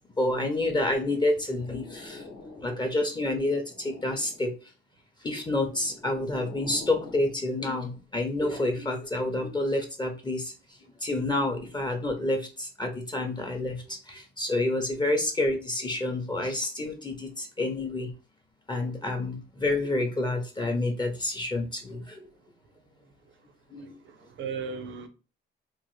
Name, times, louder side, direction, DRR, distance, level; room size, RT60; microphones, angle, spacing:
voice 1, 0.2-2.2 2.6-4.5 5.2-10.5 11.0-18.1 18.7-22.2 23.7-23.9, left 2 dB, 20° left, 0.6 m, -28 dB
sound 1, 1.2-3.0 3.4-4.6 5.5-7.3, left 3 dB, 65° left, 0.8 m, -46 dB
voice 2, 23.8-25.1, right 6 dB, 70° right, 0.6 m, -37 dB
3.0 x 2.0 x 3.0 m
cardioid pair, 90°, 20 cm